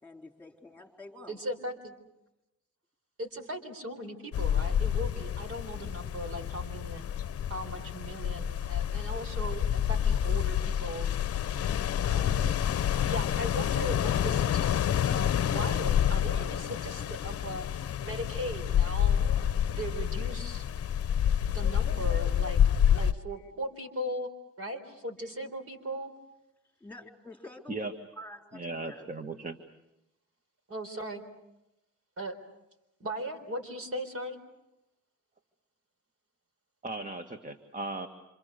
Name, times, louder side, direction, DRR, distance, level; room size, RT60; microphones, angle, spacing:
voice 1, 0.0-1.4 5.5-5.6 25.2-25.3 26.8-27.8 28.1-29.1, left 1 dB, 5° left, 3 dB, 4.0 m, -48 dB
voice 2, 1.3-1.9 3.2-7.1 7.5-11.1 12.0-12.5 13.0-17.6 18.0-19.2 19.7-20.7 21.5-22.6 22.9-24.3 24.6-26.1 30.7-31.2 32.2-32.4 33.0-34.4, right 1 dB, 50° right, 7 dB, 4.2 m, -38 dB
sound 1, 4.3-23.1, left 9 dB, 50° left, 0.8 m, -28 dB
voice 3, 28.5-29.6 36.8-38.1, right 2 dB, 25° right, 7 dB, 1.7 m, -37 dB
27.5 x 27.0 x 6.8 m, 0.93 s
cardioid pair, 90°, 30 cm